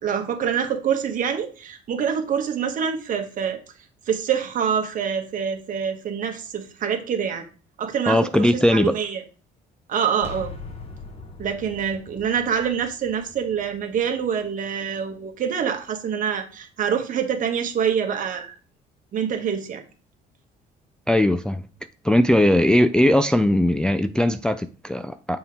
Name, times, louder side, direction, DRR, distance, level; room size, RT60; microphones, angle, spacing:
voice 1, 0.0-3.6 4.1-7.4 7.8-9.2 9.9-10.5 11.4-18.5 19.1-19.8, right 7 dB, 50° right, 1.4 m, -26 dB
voice 2, 8.1-9.0 21.1-21.6 22.0-25.4, left 1 dB, 5° left, 0.3 m, -19 dB
Cinematic Jump Scare Stinger, 10.2-15.9, left 4 dB, 35° left, 1.2 m, -42 dB
6.9 x 3.7 x 4.6 m
cardioid pair, 110°, 17 cm